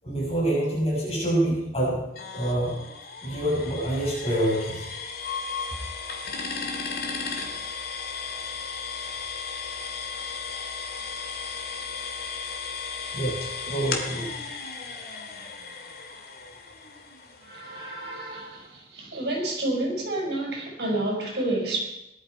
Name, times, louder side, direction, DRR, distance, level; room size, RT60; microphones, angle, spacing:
voice 1, 0.0-2.0 2.3-2.7 3.2-4.8 13.1-13.4 13.6-14.3, right 1 dB, 35° left, -5 dB, 6.8 m, -26 dB
sound 1, 2.2-17.8, left 5 dB, 60° left, 2.3 m, -35 dB
voice 2, 17.5-18.6 19.0-21.8, right 2 dB, 70° right, -1 dB, 5.8 m, -29 dB
19.0 x 12.5 x 4.6 m, 0.86 s
head